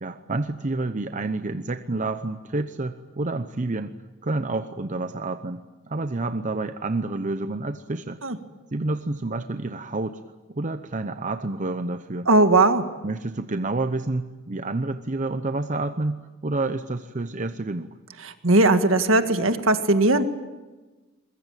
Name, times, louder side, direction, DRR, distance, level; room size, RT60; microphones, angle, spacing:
voice 1, 0.0-3.9 4.2-8.2 8.7-10.2 10.5-12.3 13.0-18.0, right 2 dB, 35° right, 9 dB, 0.8 m, -29 dB
voice 2, 12.3-12.8 18.4-20.2, right 2 dB, 70° right, 8 dB, 1.8 m, -18 dB
22.5 x 21.5 x 9.0 m, 1.2 s
head